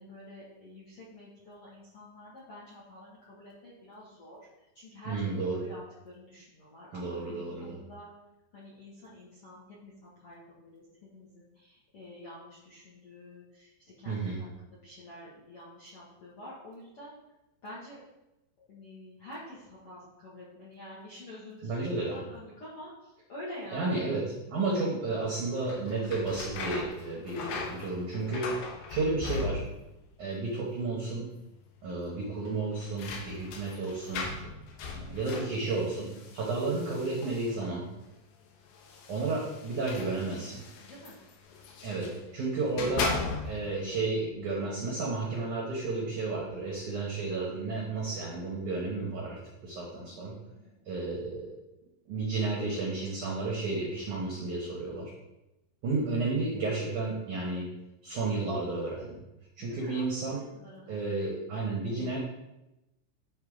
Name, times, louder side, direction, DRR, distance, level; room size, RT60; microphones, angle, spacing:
voice 1, 0.0-4.5 4.7-5.8 6.0-8.1 8.5-10.8 11.1-17.2 17.6-18.0 18.6-23.9 33.2-33.4 36.4-36.5 40.8-41.2 41.8-42.5 50.5-50.8 59.6-61.2, left 1 dB, 75° left, -8 dB, 1.3 m, -48 dB
voice 2, 5.0-5.6 6.9-7.8 14.0-14.4 21.6-22.2 23.7-28.5 28.9-29.6 30.2-31.3 31.8-34.3 34.9-37.8 39.1-40.6 41.8-43.1 43.4-50.3 50.8-51.5 52.1-55.1 55.8-57.7 58.0-59.2 59.6-60.4 60.9-62.2, right 3 dB, 80° right, -3 dB, 1.8 m, -32 dB
sound 1, 25.6-30.0 30.3-30.9 31.2-31.3 32.4-37.8 38.7-42.2 42.6-43.8, left 4 dB, 90° left, 2.0 m, -39 dB
11.0 x 3.9 x 5.0 m, 0.94 s
omnidirectional pair, 5.6 m